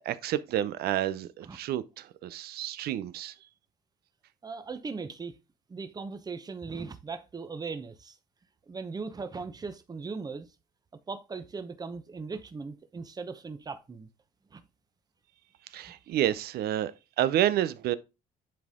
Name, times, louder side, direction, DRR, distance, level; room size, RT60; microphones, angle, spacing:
voice 1, 0.1-3.3 15.7-16.9 17.2-18.0, right 12 dB, 70° right, 0.6 m, -29 dB
voice 2, 4.4-5.4 5.7-8.2 8.7-10.5 11.1-14.1 14.5-14.6, right 4 dB, 25° right, 0.9 m, -38 dB
10.5 x 4.1 x 3.7 m
cardioid pair, 110°, 17 cm